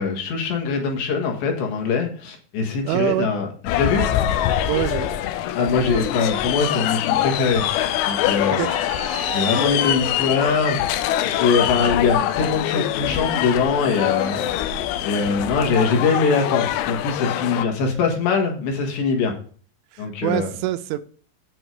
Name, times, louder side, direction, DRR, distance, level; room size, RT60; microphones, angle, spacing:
voice 1, 0.0-4.1 5.5-7.7 8.0-8.7 9.3-11.1 11.3-14.7 15.0-19.3 20.0-20.5, left 5 dB, 70° left, 3.6 m, -22 dB
voice 2, 2.8-3.3 4.7-5.1 8.5-8.7 19.9-21.0, right 15 dB, 85° right, 3.0 m, -24 dB
sound 1, 3.7-17.6, left 12 dB, 90° left, 3.2 m, -24 dB
sound 2, 4.5-5.5 6.7-6.8 7.1-9.7, left 3 dB, 55° left, 2.5 m, -33 dB
8.9 x 8.0 x 4.7 m
omnidirectional pair, 5.4 m